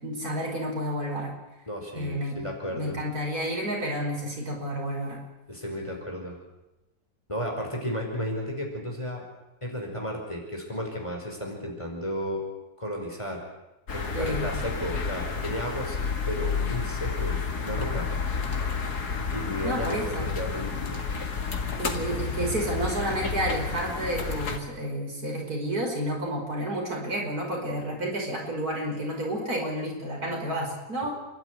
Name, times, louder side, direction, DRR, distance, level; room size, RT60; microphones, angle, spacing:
voice 1, 0.0-1.3 1.9-2.4 2.7-5.2 14.1-14.5 19.6-20.3 21.8-31.1, right 1 dB, 70° right, 0 dB, 6.0 m, -30 dB
voice 2, 1.7-3.0 5.5-6.4 7.3-9.2 9.6-12.4 12.8-13.4 13.9-18.1 19.3-21.0, equal, 20° left, 0 dB, 5.2 m, -33 dB
sound 1, 13.9-24.6, left 5 dB, 80° left, 2.6 m, -30 dB
29.5 x 12.0 x 9.8 m, 1.0 s
omnidirectional pair, 1.7 m